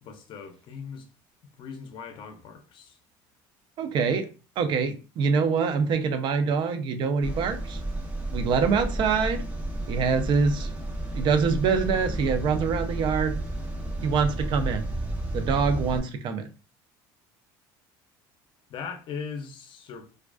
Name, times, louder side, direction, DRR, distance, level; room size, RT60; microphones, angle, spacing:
voice 1, 0.0-1.1 1.6-3.0 18.7-20.2, left 6 dB, 55° left, 0.5 m, -39 dB
voice 2, 3.8-4.3 4.6-7.8 8.3-9.4 9.9-10.7 11.1-13.4 14.0-14.9 15.3-16.5, right 5 dB, 55° right, 0.4 m, -25 dB
sound 1, 7.2-16.0, right 1 dB, 15° right, 0.7 m, -32 dB
2.3 x 2.3 x 2.3 m
supercardioid pair, 105°, 10 cm